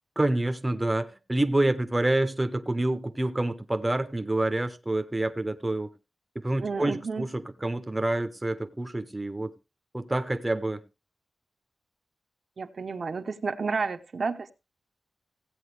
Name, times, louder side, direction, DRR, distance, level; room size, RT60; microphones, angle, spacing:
voice 1, 0.2-5.9 6.3-9.5 9.9-10.8, right 1 dB, 10° right, 0.7 m, -27 dB
voice 2, 6.6-7.3 12.6-14.5, right 4 dB, 50° right, 0.7 m, -31 dB
16.0 x 8.8 x 3.3 m
wide cardioid pair, 165°, 0 cm